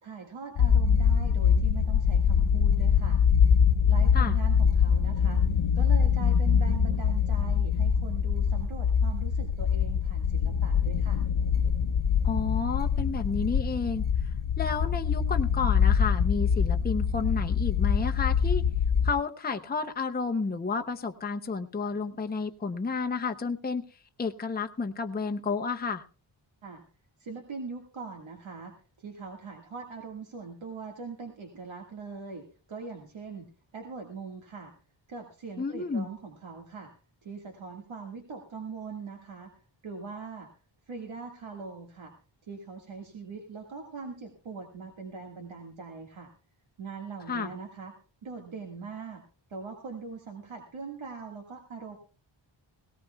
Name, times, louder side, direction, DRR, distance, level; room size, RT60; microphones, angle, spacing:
voice 1, 0.0-3.2 3.9-5.5 5.7-11.2 26.6-26.9 27.2-34.7 35.1-36.9 37.2-40.5 40.9-42.1 42.4-46.3 46.8-48.0 48.2-49.2 49.5-52.0, right 4 dB, 85° right, 3 dB, 1.9 m, -41 dB
sound 1, 0.6-19.1, left 7 dB, 90° left, 0.8 m, -24 dB
voice 2, 12.2-14.0 14.6-18.6 19.0-23.8 24.2-26.0 35.6-36.1 47.3-47.5, left 4 dB, 20° left, 6 dB, 0.7 m, -31 dB
18.0 x 18.0 x 2.3 m, 0.36 s
wide cardioid pair, 130°, 46 cm